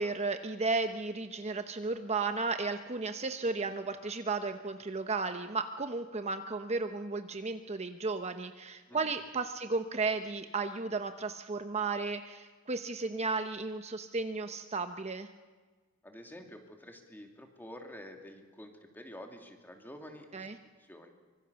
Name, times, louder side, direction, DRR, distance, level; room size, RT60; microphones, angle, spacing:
voice 1, 0.0-15.3 20.3-20.6, right 3 dB, 30° right, 8 dB, 0.9 m, -34 dB
voice 2, 16.0-20.5 20.8-21.1, left 1 dB, 10° left, 3 dB, 2.7 m, -49 dB
25.0 x 24.0 x 7.0 m, 1.3 s
head